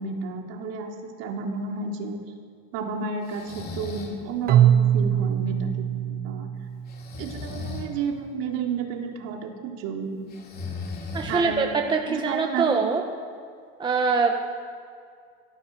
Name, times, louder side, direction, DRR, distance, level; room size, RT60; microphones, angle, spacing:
voice 1, 0.0-2.2 2.7-6.5 7.2-10.3 11.3-11.8 12.1-12.9, right 5 dB, 55° right, 1 dB, 3.9 m, -32 dB
Breathing, 3.2-4.2 6.9-7.9 10.3-11.7, left 4 dB, 30° left, 3.9 m, -36 dB
Keyboard (musical), 4.5-7.4, right 10 dB, 30° right, 1.9 m, -22 dB
voice 2, 11.1-13.0 13.8-14.3, right 4 dB, 15° right, 2 dB, 1.5 m, -23 dB
25.5 x 18.0 x 7.9 m, 2.3 s
cardioid pair, 155°, 30 cm